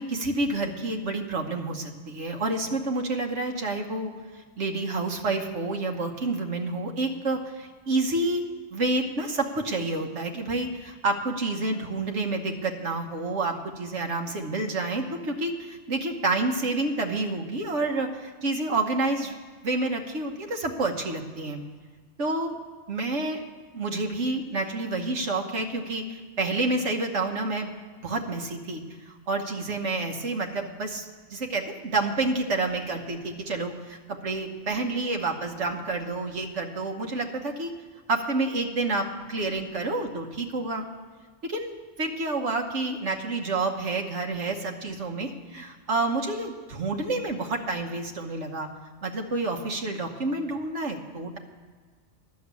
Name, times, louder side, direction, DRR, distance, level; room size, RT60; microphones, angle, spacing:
voice 1, 0.0-8.4 8.7-19.3 19.6-21.6 22.2-22.6 22.9-23.4 23.7-27.7 28.0-37.7 38.1-40.9 41.4-48.7 49.0-51.4, right 2 dB, 80° right, 3 dB, 1.5 m, -29 dB
11.5 x 7.1 x 8.2 m, 1.5 s
omnidirectional pair, 1.2 m